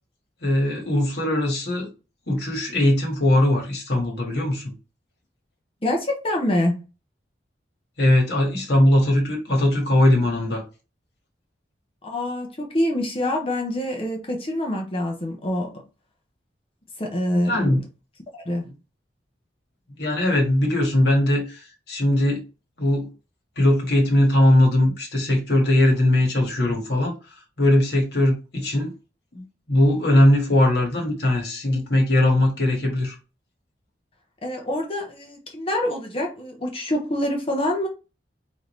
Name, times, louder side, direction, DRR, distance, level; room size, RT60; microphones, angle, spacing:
voice 1, 0.4-1.9 2.3-4.7 8.0-10.6 17.3-17.8 20.0-22.4 22.8-23.1 23.6-27.1 27.6-28.9 29.3-33.2, left 1 dB, 65° left, 1.8 m, -20 dB
voice 2, 5.8-6.8 12.0-15.8 17.0-17.8 18.3-18.7 34.4-37.9, left 1 dB, 30° left, 1.1 m, -26 dB
3.9 x 3.9 x 3.2 m
head